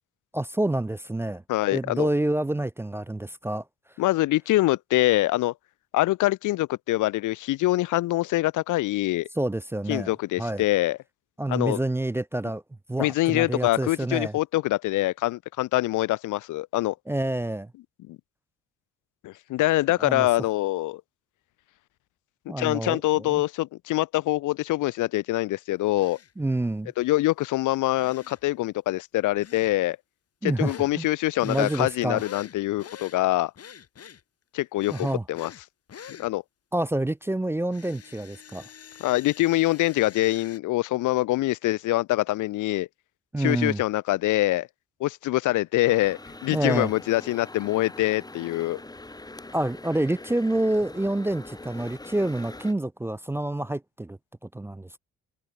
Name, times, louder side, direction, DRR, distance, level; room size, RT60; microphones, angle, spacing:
voice 1, 0.3-1.4 1.7-3.6 9.4-10.1 10.4-10.6 11.4-12.6 12.9-14.3 17.1-17.7 20.0-20.3 22.5-23.4 26.4-26.9 30.4-31.1 31.4-32.2 34.9-35.2 36.7-38.7 43.3-43.8 46.5-46.9 49.5-54.2 54.5-55.0, right 1 dB, 10° right, 0.4 m, -28 dB
voice 2, 1.5-2.1 4.0-5.5 5.9-9.3 9.9-11.0 11.5-11.8 13.0-16.9 18.1-18.2 19.2-21.0 22.5-26.2 27.0-30.0 30.4-33.5 34.5-35.5 36.2-36.4 39.0-42.9 43.4-44.7 45.0-48.8, left 17 dB, 80° left, 0.8 m, -24 dB
sound 1, 26.0-26.3 28.0-28.4 29.4-29.7 30.7-30.9 31.4-33.2 33.6-34.2 34.8-35.6 35.9-36.3 37.7-40.6, left 8 dB, 50° left, 3.9 m, -45 dB
sound 2, 45.8-52.7, left 2 dB, 15° left, 2.1 m, -43 dB
cardioid pair, 90°, 30 cm